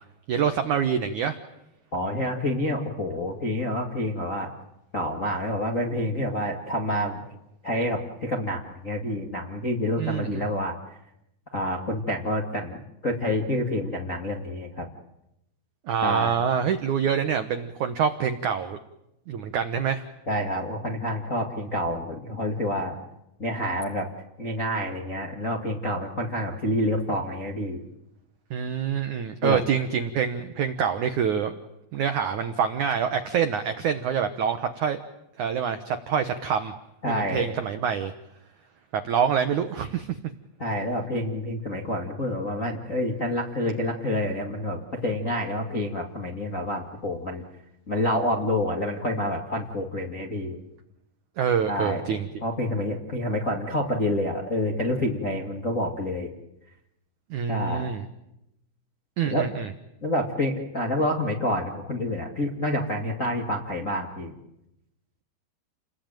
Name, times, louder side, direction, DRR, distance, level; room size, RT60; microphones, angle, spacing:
voice 1, 0.3-1.4 10.0-10.5 15.9-18.8 19.3-20.0 28.5-31.5 31.9-35.0 35.4-36.7 37.1-38.1 38.9-40.2 51.4-52.3 57.3-58.0 59.2-59.7, right 7 dB, 90° right, 9 dB, 1.7 m, -26 dB
voice 2, 1.9-4.5 4.9-7.2 7.6-10.7 11.5-14.9 16.0-16.3 20.3-23.0 23.4-24.1 24.4-27.8 29.4-29.6 37.0-37.5 40.6-47.4 47.9-50.6 51.7-56.3 57.5-57.9 59.3-59.5 60.0-64.3, left 1 dB, 35° left, 0 dB, 1.3 m, -28 dB
30.0 x 21.0 x 9.1 m, 0.88 s
omnidirectional pair, 5.2 m